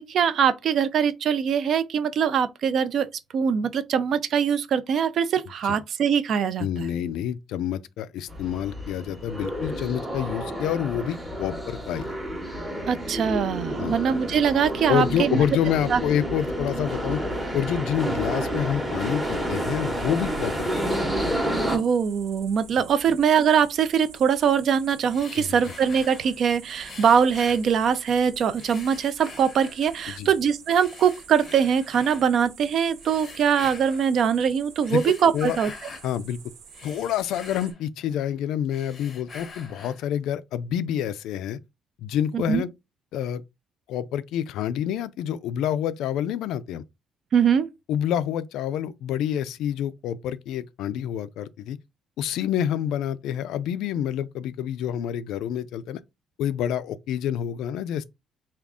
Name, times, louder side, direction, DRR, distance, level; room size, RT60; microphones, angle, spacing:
voice 1, 0.0-6.9 12.9-15.4 15.9-16.0 21.7-35.7 42.3-42.6 47.3-47.7, right 7 dB, 50° right, 0.4 m, -22 dB
voice 2, 6.6-12.1 13.8-14.0 14.9-17.2 17.5-20.9 25.3-25.6 30.1-30.3 34.9-35.0 35.3-35.6 36.0-36.4 36.8-41.6 42.0-42.7 43.1-43.4 43.9-46.8 47.9-51.8 52.2-56.0 56.4-58.0, left 10 dB, 90° left, 0.3 m, -28 dB
sound 1, 8.3-21.8, right 1 dB, 5° right, 0.8 m, -30 dB
sound 2, 21.7-37.7, right 6 dB, 80° right, 0.9 m, -48 dB
sound 3, 25.1-26.4 26.8-28.2 28.6-30.1 30.7-32.3 33.0-34.1 34.7-36.1 36.5-38.3 38.7-40.1, left 4 dB, 30° left, 0.6 m, -44 dB
3.6 x 2.3 x 3.5 m
cardioid pair, 170°, 0 cm